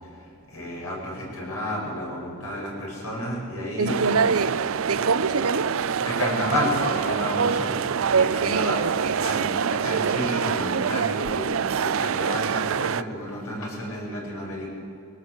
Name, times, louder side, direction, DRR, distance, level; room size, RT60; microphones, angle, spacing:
voice 1, 0.0-4.2 6.0-14.7, left 1 dB, 90° left, 7.7 m, -31 dB
voice 2, 3.8-5.7 8.1-9.1, right 4 dB, 90° right, 1.0 m, -24 dB
sound 1, 3.9-13.0, right 7 dB, 65° right, 0.4 m, -26 dB
21.5 x 19.0 x 8.2 m
head